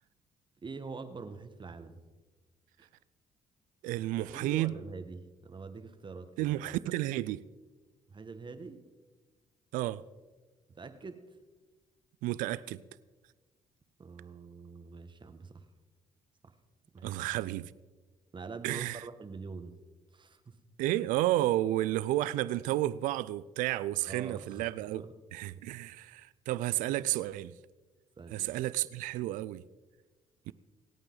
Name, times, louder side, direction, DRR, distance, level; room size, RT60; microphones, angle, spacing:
voice 1, 0.6-2.0 2.8-2.9 4.0-6.6 8.1-8.8 10.7-11.2 14.0-15.6 16.4-16.5 16.9-17.2 18.3-19.8 20.1-20.6 24.0-25.1 28.2-28.5, right 4 dB, 35° right, 1.5 m, -45 dB
voice 2, 3.8-4.7 6.4-7.4 9.7-10.0 12.2-12.8 17.0-17.7 18.6-19.0 20.8-25.0 25.3-27.6 28.3-29.6 30.5-30.6, right 15 dB, 80° right, 0.5 m, -31 dB
26.5 x 8.8 x 4.0 m
supercardioid pair, 60°, 14 cm